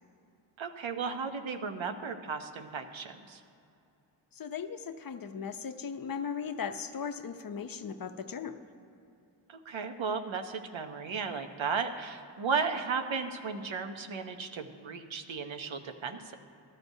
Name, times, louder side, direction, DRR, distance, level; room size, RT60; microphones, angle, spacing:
voice 1, 0.6-3.4 9.5-16.3, right 5 dB, 75° right, 7 dB, 0.8 m, -35 dB
voice 2, 4.3-8.6, left 6 dB, 50° left, 9 dB, 0.5 m, -37 dB
14.0 x 13.5 x 2.7 m, 2.7 s
wide cardioid pair, 100°, 47 cm